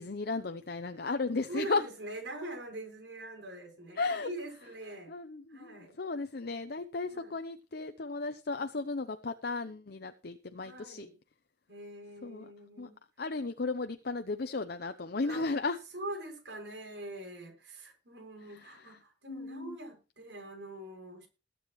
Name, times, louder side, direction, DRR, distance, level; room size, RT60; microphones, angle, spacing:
voice 1, 0.0-1.8 4.0-4.3 5.1-11.1 12.2-12.4 12.8-12.9 13.2-15.8 18.5-18.8 19.3-19.8, left 3 dB, 60° left, 8 dB, 0.8 m, -35 dB
voice 2, 1.5-5.1 5.5-6.0 7.1-7.3 10.6-11.2 11.7-13.0 15.2-15.5 15.9-21.3, right 1 dB, 80° right, 2 dB, 6.5 m, -43 dB
21.0 x 8.7 x 3.1 m, 0.31 s
head